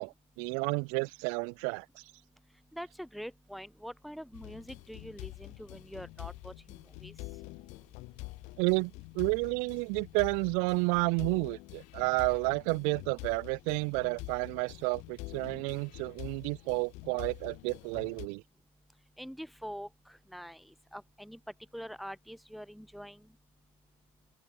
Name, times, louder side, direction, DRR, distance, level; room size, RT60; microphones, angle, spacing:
voice 1, 0.0-1.8 8.6-18.4, right 39 dB, 75° right, 1.6 m, -31 dB
voice 2, 2.7-7.1 19.2-21.4 21.7-23.3, equal, ahead, 4.7 m, -45 dB
sound 1, 4.3-18.3, left 23 dB, 65° left, 2.0 m, -46 dB
open air
cardioid pair, 130°, 13 cm